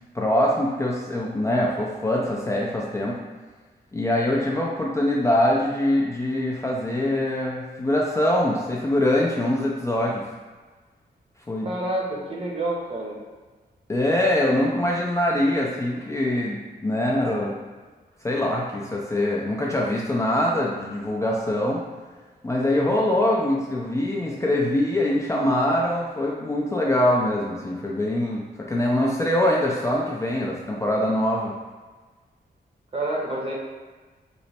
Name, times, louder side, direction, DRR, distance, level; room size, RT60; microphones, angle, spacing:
voice 1, 0.1-3.2 3.9-10.2 11.5-11.7 13.9-17.6 18.2-21.8 22.4-31.5, left 1 dB, 15° left, -4 dB, 0.4 m, -23 dB
voice 2, 11.6-13.2 32.9-33.5, right 1 dB, 30° right, -3 dB, 0.8 m, -28 dB
3.0 x 2.1 x 4.2 m, 1.3 s
wide cardioid pair, 115°, 18 cm